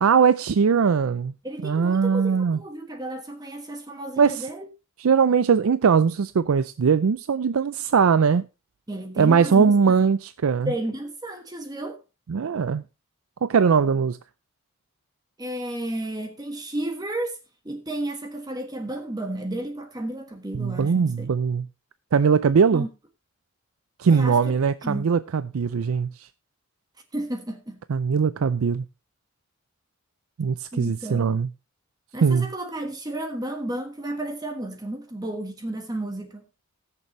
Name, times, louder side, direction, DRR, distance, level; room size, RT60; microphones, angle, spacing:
voice 1, 0.0-1.3 1.6-2.6 4.2-4.5 5.0-8.4 9.2-10.7 12.3-12.8 13.4-14.2 20.5-21.7 22.1-22.9 24.0-26.3 27.9-28.8 30.4-31.5 32.2-32.5, right 6 dB, 85° right, 0.4 m, -20 dB
voice 2, 1.4-4.7 8.9-10.0 10.6-12.0 15.4-17.4 17.6-21.3 22.7-22.9 24.1-24.5 24.8-25.1 27.1-27.8 30.7-31.3 32.1-36.4, right 1 dB, 20° right, 1.3 m, -32 dB
19.5 x 6.8 x 3.1 m
head